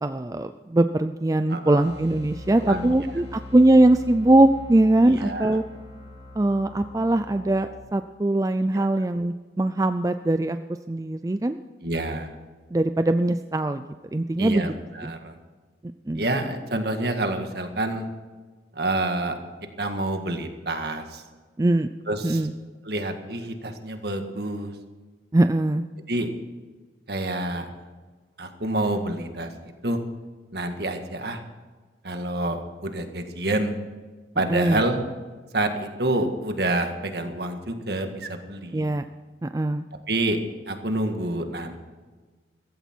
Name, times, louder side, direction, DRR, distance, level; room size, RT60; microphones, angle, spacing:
voice 1, 0.0-5.6 6.4-10.6 10.9-11.6 12.7-13.8 14.1-14.7 15.0-15.1 16.1-16.3 21.6-21.9 22.2-22.5 25.3-25.8 34.5-34.8 38.7-39.0 39.4-39.8, right 1 dB, 20° right, 9 dB, 0.4 m, -21 dB
voice 2, 1.5-1.9 2.5-2.9 5.0-5.5 8.7-8.9 11.8-12.3 14.4-15.3 16.1-18.1 18.7-19.4 19.8-21.2 22.1-22.4 22.8-24.7 26.1-26.3 27.1-27.7 28.4-29.5 29.8-30.0 30.5-31.4 32.0-33.7 34.3-35.0 35.5-38.9 40.1-40.4 40.7-41.8, right 1 dB, 60° right, 6 dB, 1.8 m, -28 dB
sound 1, 1.8-7.8, left 2 dB, 30° left, 4.3 m, -42 dB
15.5 x 15.5 x 4.5 m, 1.4 s
head